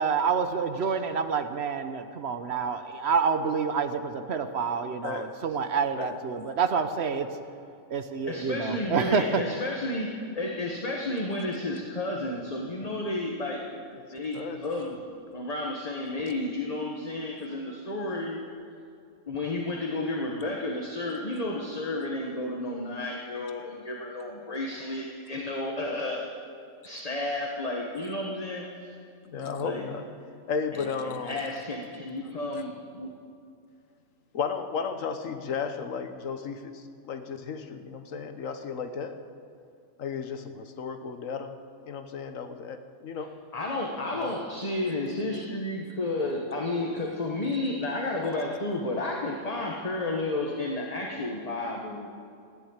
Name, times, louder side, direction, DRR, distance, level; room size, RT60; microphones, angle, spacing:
voice 1, 0.0-7.3 7.9-9.4, right 5 dB, 60° right, 9 dB, 1.0 m, -28 dB
voice 2, 5.0-5.3 6.0-6.2 14.0-14.1 14.3-14.6 29.2-30.1 30.5-31.4 34.3-39.2 40.0-41.5 41.9-43.3 44.2-44.3, left 5 dB, 80° left, 8 dB, 1.4 m, -34 dB
voice 3, 8.3-13.6 14.1-15.0 15.3-18.4 19.3-26.4 26.8-29.0 29.4-29.8 30.7-33.1 43.5-52.1, left 2 dB, 30° left, 0 dB, 1.3 m, -32 dB
15.0 x 10.5 x 8.7 m, 2.4 s
omnidirectional pair, 1.3 m